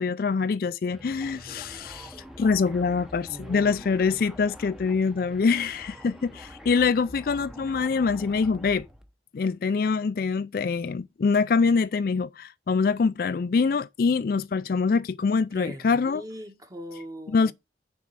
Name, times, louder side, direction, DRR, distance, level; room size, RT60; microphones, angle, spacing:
voice 1, 0.0-8.8 9.3-16.2 17.3-17.5, left 5 dB, 55° left, 0.4 m, -24 dB
sound 1, 0.9-9.1, equal, 5° right, 0.8 m, -45 dB
voice 2, 3.3-4.2 15.5-17.5, equal, 20° right, 1.3 m, -41 dB
6.9 x 4.2 x 6.5 m
head